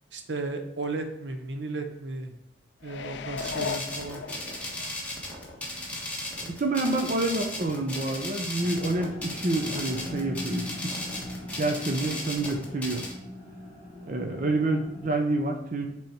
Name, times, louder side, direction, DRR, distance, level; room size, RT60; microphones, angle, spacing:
voice 1, 0.1-2.3 2.8-4.2, right 3 dB, 75° right, 6 dB, 0.8 m, -34 dB
sound 1, 2.8-4.9 5.4-5.5, left 7 dB, 70° left, 0.4 m, -36 dB
sound 2, 3.4-13.1, left 1 dB, 5° left, 1.3 m, -36 dB
voice 2, 6.4-10.7 11.6-13.0 14.1-15.9, right 2 dB, 45° right, 3 dB, 0.7 m, -28 dB
sound 3, 8.5-15.3, left 1 dB, 30° left, 2.4 m, -40 dB
8.0 x 3.5 x 4.4 m, 0.82 s
head